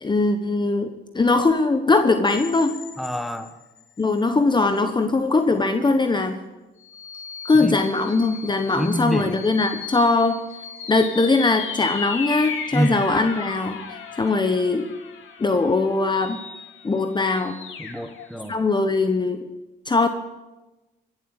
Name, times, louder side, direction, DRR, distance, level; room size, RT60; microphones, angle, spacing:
voice 1, 0.0-2.7 4.0-6.4 7.4-10.4 10.9-14.9 15.4-16.4 16.8-17.6 18.5-19.4 19.9-20.1, left 3 dB, 20° left, 7 dB, 1.0 m, -21 dB
sound 1, 2.2-4.2 4.7-4.8 6.8-18.5, left 6 dB, 80° left, 2.2 m, -36 dB
voice 2, 3.0-3.5 7.6-7.7 8.8-9.4 12.7-13.0 17.8-18.5, right 1 dB, ahead, 7 dB, 1.4 m, -26 dB
16.0 x 7.4 x 9.7 m, 1.1 s
cardioid pair, 90°, 20 cm